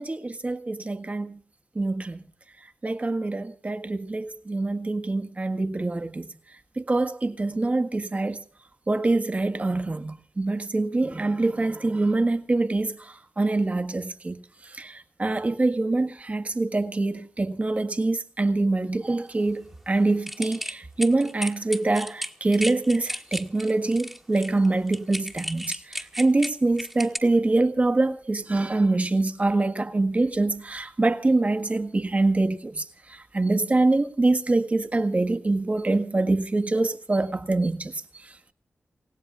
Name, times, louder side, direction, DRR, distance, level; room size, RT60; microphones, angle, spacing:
voice 1, 0.0-1.4 1.7-2.2 2.8-6.3 6.8-8.4 8.9-14.4 14.6-38.5, right 2 dB, 35° right, 1.7 m, -25 dB
sound 1, 20.3-27.2, equal, 5° right, 1.6 m, -34 dB
28.5 x 17.0 x 2.5 m
wide cardioid pair, 80°, 4 cm